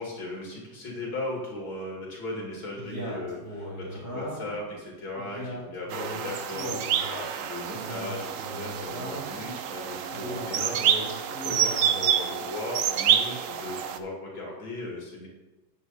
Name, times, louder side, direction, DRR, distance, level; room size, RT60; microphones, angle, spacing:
voice 1, 0.0-15.3, left 2 dB, 75° left, -2 dB, 2.9 m, -37 dB
Male speech man speaking, 2.7-4.6 5.1-7.1 7.7-9.4 10.1-12.1, equal, 35° right, 3.8 m, -38 dB
sound 1, 5.9-14.0, right 8 dB, 80° right, 0.7 m, -28 dB
10.0 x 8.0 x 4.1 m, 1.1 s
omnidirectional pair, 2.2 m